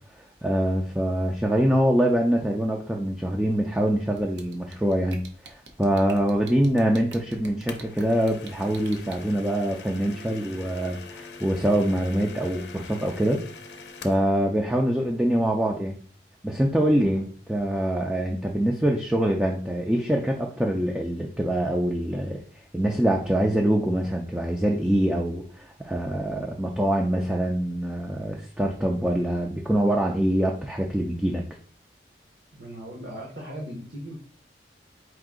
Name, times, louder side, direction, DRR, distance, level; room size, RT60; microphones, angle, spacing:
voice 1, 0.4-5.2 5.5-13.4 14.0-16.0 16.4-22.4 22.7-31.4, right 1 dB, 5° right, 0 dB, 0.4 m, -24 dB
sound 1, 4.2-9.2, right 4 dB, 85° right, 0.7 m, -45 dB
sound 2, 7.7-14.3, left 4 dB, 75° left, 0.6 m, -43 dB
voice 2, 32.5-34.1, equal, 60° right, -1 dB, 0.9 m, -38 dB
4.7 x 2.6 x 3.7 m, 0.44 s
head